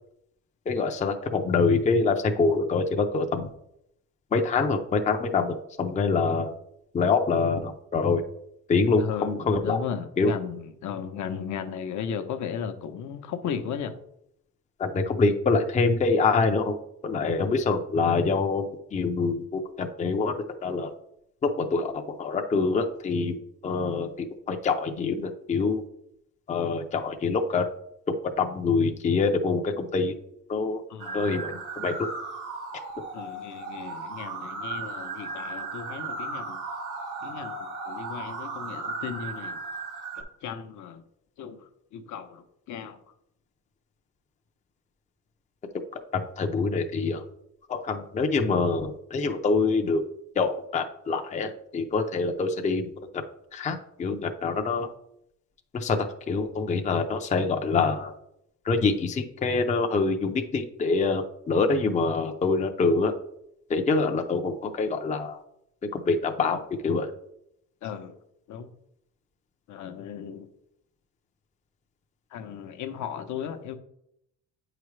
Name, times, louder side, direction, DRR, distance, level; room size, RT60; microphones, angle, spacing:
voice 1, 0.7-3.4 4.3-6.5 6.9-8.2 8.7-9.8 10.2-10.3 14.8-16.8 17.0-20.9 21.4-23.4 23.6-25.8 26.5-27.6 28.2-30.1 30.5-30.8 31.1-31.9 46.1-47.2 47.7-50.0 50.4-52.9 53.1-53.2 53.5-54.9 55.7-58.1 58.7-63.1 63.7-65.4 65.9-67.1, left 4 dB, 25° left, 4 dB, 0.5 m, -25 dB
voice 2, 9.0-13.9 30.9-31.4 33.1-36.6 37.2-39.6 40.2-41.0 41.4-43.0 67.8-68.2 68.5-68.7 69.7-70.5 72.3-73.7, left 7 dB, 65° left, 6 dB, 0.8 m, -36 dB
sound 1, 31.0-40.2, right 3 dB, 80° right, 2.5 m, -36 dB
8.7 x 4.9 x 3.2 m, 0.78 s
cardioid pair, 145°, 32 cm